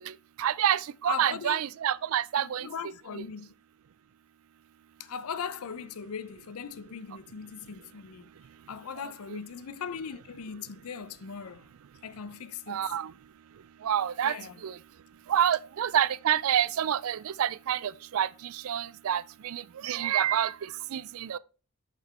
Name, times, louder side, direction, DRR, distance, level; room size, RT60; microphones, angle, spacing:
voice 1, 0.4-2.7 3.1-3.2 9.3-9.4 12.7-13.1 13.8-14.3 14.6-14.7 15.3-20.5 20.9-21.4, right 10 dB, 70° right, 0.4 m, -28 dB
voice 2, 1.1-1.6 2.3-3.5 5.0-8.3 8.7-11.7 12.0-12.9 14.2-14.6, left 6 dB, 80° left, 0.5 m, -39 dB
6.1 x 5.6 x 4.2 m
head